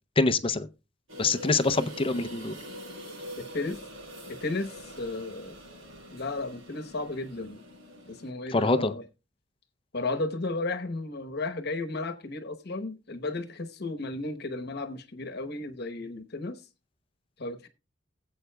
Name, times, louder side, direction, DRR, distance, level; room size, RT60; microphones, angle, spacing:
voice 1, 0.2-0.7 1.2-2.5 8.5-8.9, left 3 dB, 30° left, 0.5 m, -25 dB
sound 1, 1.1-8.3, equal, 85° right, 6.5 m, -44 dB
voice 2, 3.4-3.8 4.3-5.6 6.1-7.6 8.1-9.0 9.9-16.6 17.4-17.7, left 2 dB, 55° left, 1.0 m, -34 dB
19.0 x 7.9 x 2.2 m
head